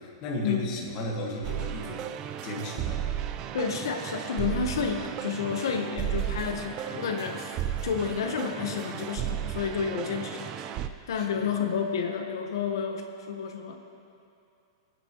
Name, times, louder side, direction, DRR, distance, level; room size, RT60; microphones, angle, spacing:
voice 1, 0.0-2.1 2.4-3.0 11.1-11.5, left 1 dB, 30° left, -1 dB, 1.6 m, -35 dB
sound 1, 1.4-10.9, right 10 dB, 25° right, 0.4 m, -34 dB
voice 2, 3.5-10.6 11.1-13.8, left 6 dB, 75° left, 4 dB, 1.1 m, -30 dB
27.0 x 9.6 x 3.0 m, 2.5 s
supercardioid pair, 170°, 2 cm